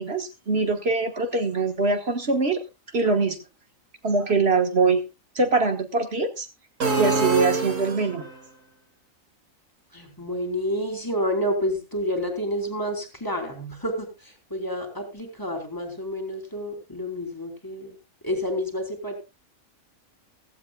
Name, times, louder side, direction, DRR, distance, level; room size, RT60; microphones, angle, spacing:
voice 1, 0.0-2.6 2.9-3.4 4.0-5.0 5.3-6.5 7.0-8.3, right 3 dB, 50° right, 6 dB, 1.6 m, -23 dB
sound 1, 6.8-8.4, right 3 dB, 65° right, 2.6 m, -25 dB
voice 2, 9.9-17.9 18.2-19.2, equal, 15° left, 3 dB, 3.2 m, -29 dB
16.0 x 15.0 x 2.3 m, 0.27 s
omnidirectional pair, 1.4 m